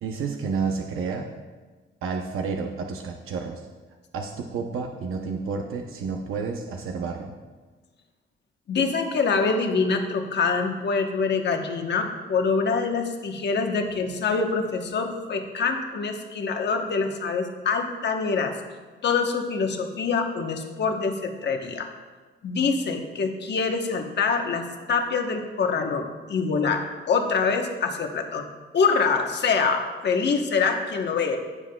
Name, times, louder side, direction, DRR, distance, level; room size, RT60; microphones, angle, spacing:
voice 1, 0.0-1.3 2.0-3.6 4.1-7.3, right 5 dB, 85° right, 2 dB, 0.7 m, -30 dB
voice 2, 8.7-18.5 19.0-21.9 22.4-28.5 28.7-31.4, left 5 dB, 55° left, 4 dB, 1.0 m, -25 dB
15.5 x 7.3 x 2.3 m, 1.3 s
wide cardioid pair, 140°, 21 cm